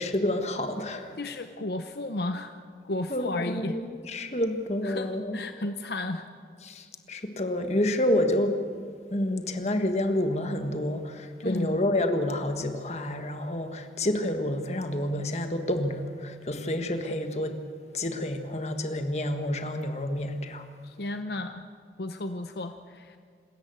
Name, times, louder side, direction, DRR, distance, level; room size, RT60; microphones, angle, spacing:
voice 1, 0.0-1.2 3.1-5.4 6.6-8.5 9.1-17.6 17.9-20.6, left 1 dB, 40° left, 6 dB, 1.6 m, -29 dB
voice 2, 1.2-2.5 2.8-3.8 4.8-6.3 11.4-11.8 20.8-21.7 22.0-23.2, left 2 dB, 65° left, 8 dB, 0.8 m, -33 dB
26.5 x 14.0 x 7.9 m, 2.1 s
head